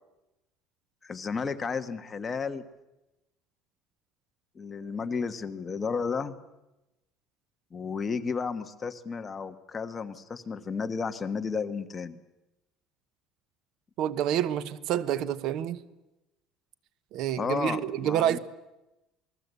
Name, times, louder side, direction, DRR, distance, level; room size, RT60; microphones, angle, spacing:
voice 1, 1.0-2.6 4.5-6.4 7.7-12.2 17.4-18.4, left 5 dB, 20° left, 1.3 m, -33 dB
voice 2, 14.0-15.8 17.1-18.4, right 10 dB, 55° right, 1.0 m, -28 dB
28.0 x 20.5 x 8.2 m
cardioid pair, 155°, 0 cm